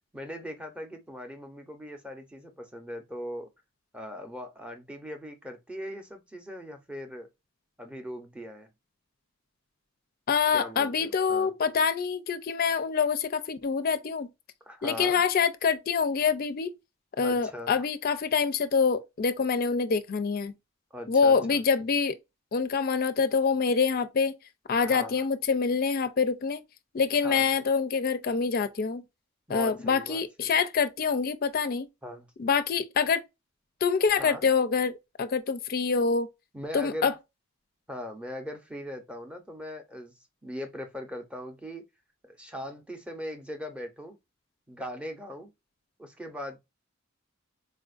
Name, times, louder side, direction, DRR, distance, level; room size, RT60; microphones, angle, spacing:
voice 1, 0.1-3.5 3.9-7.3 7.8-8.7 10.5-11.5 14.6-15.2 17.2-17.7 20.9-21.6 24.8-25.3 27.2-27.5 29.5-30.5 32.0-32.3 34.2-34.5 36.5-37.1 37.9-40.1 40.4-41.9 42.2-44.2 44.7-45.5 46.0-46.6, equal, 5° right, 0.7 m, -40 dB
voice 2, 10.3-14.3 14.8-16.7 17.2-20.5 21.1-22.2 22.5-24.4 24.7-26.6 26.9-29.0 29.5-31.9 32.4-33.2 33.8-36.3 36.7-37.1, left 5 dB, 45° left, 0.4 m, -26 dB
4.2 x 2.4 x 2.4 m
head